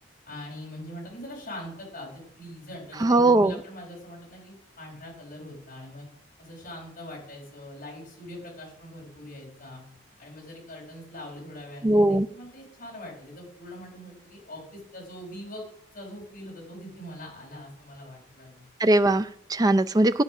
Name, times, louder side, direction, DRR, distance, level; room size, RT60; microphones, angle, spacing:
voice 1, 0.3-6.1 6.4-9.8 10.2-15.6 15.9-18.6, left 1 dB, 40° left, -2 dB, 4.9 m, -42 dB
voice 2, 3.0-3.5 11.8-12.3 18.8-20.2, right 2 dB, 20° right, 10 dB, 0.4 m, -20 dB
12.5 x 8.6 x 6.0 m, 0.74 s
head